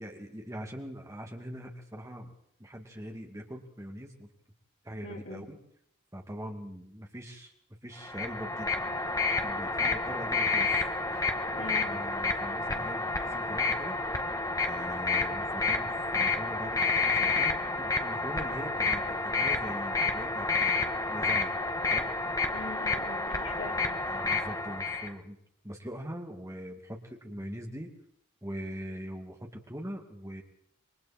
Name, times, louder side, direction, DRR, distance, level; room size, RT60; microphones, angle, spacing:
voice 1, 0.0-2.3 2.6-4.3 4.8-5.6 6.1-7.5 7.8-8.9 9.4-11.4 11.8-14.3 14.6-22.1 24.1-25.4 25.6-27.9 28.4-30.4, equal, 15° right, 2 dB, 2.4 m, -42 dB
voice 2, 5.0-5.5 11.5-11.9 22.5-23.9, left 2 dB, 70° left, -1 dB, 4.5 m, -42 dB
sound 1, 8.0-25.1, left 3 dB, 15° left, 1.4 m, -30 dB
27.5 x 23.0 x 4.4 m, 0.67 s
head